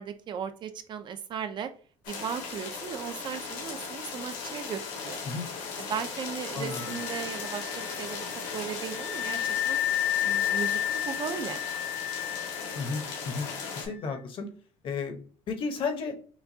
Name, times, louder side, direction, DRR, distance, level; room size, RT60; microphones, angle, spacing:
voice 1, 0.0-1.7 2.1-5.2 5.8-8.3 8.5-9.8 10.2-10.8 11.1-11.6, right 8 dB, 40° right, 9 dB, 0.4 m, -36 dB
sound 1, 2.0-13.9, left 5 dB, 80° left, 1.6 m, -37 dB
voice 2, 6.5-7.0 12.8-13.5 13.7-14.5 14.8-15.2 15.5-16.2, left 4 dB, 40° left, 6 dB, 0.8 m, -33 dB
Wind instrument woodwind instrument, 6.7-14.1, left 11 dB, 65° left, 0.5 m, -32 dB
5.8 x 2.2 x 2.7 m, 0.42 s
cardioid pair, 155°, 13 cm